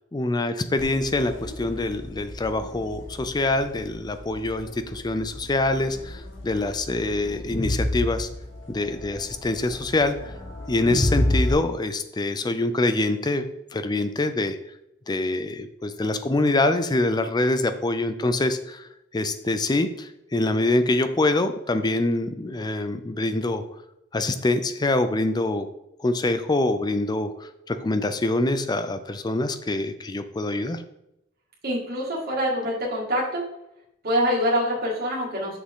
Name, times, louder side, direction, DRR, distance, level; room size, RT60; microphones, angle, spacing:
voice 1, 0.1-8.3 8.7-10.3 10.7-13.5 13.7-14.6 15.1-18.9 19.1-23.6 24.1-25.7 26.0-30.8, left 2 dB, 20° left, 10 dB, 0.4 m, -25 dB
Crowd, 0.8-11.5, left 1 dB, 70° left, 1.6 m, -31 dB
voice 2, 31.6-33.4 34.0-35.6, equal, 50° right, -5 dB, 2.1 m, -25 dB
6.3 x 5.9 x 3.7 m, 0.84 s
head